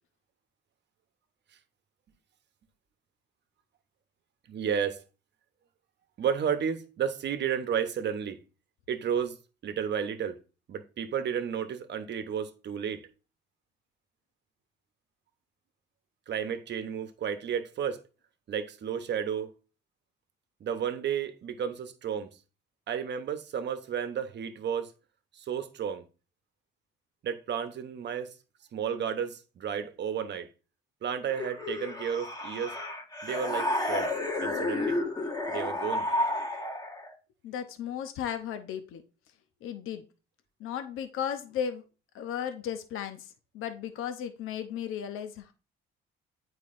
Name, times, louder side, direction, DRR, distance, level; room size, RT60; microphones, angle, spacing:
voice 1, 4.5-5.0 6.2-8.4 8.9-9.4 9.6-10.4 10.7-13.1 16.3-18.0 18.5-19.5 20.6-22.3 22.9-24.9 25.3-26.0 27.2-28.3 28.7-30.5 31.0-32.8 33.2-34.1 34.4-35.0 35.5-36.1, right 8 dB, 55° right, 1.0 m, -32 dB
sound 1, 31.3-37.1, left 1 dB, 20° left, 1.5 m, -31 dB
voice 2, 37.4-39.0 39.6-40.0 40.6-41.8 42.1-45.5, left 8 dB, 75° left, 0.8 m, -35 dB
8.4 x 4.7 x 2.6 m
cardioid pair, 80°, 21 cm